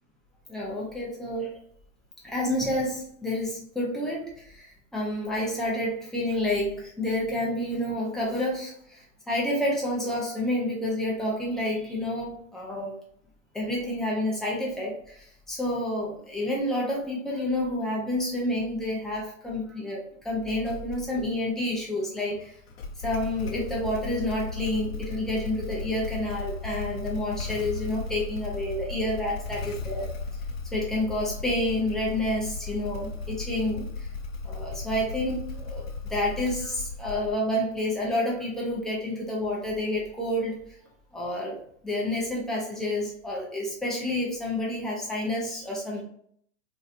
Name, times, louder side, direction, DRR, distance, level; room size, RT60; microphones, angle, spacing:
voice 1, 0.5-1.5 2.2-9.0 9.3-12.9 13.5-22.6 23.0-30.1 30.7-34.1 34.4-40.6 41.1-41.6 41.8-46.0, left 1 dB, ahead, -4 dB, 0.4 m, -29 dB
Motorcycle / Engine starting, 20.6-21.3 22.7-37.6, left 3 dB, 50° left, 0.7 m, -36 dB
3.1 x 2.8 x 2.5 m, 0.65 s
hypercardioid pair, 130°, 40 cm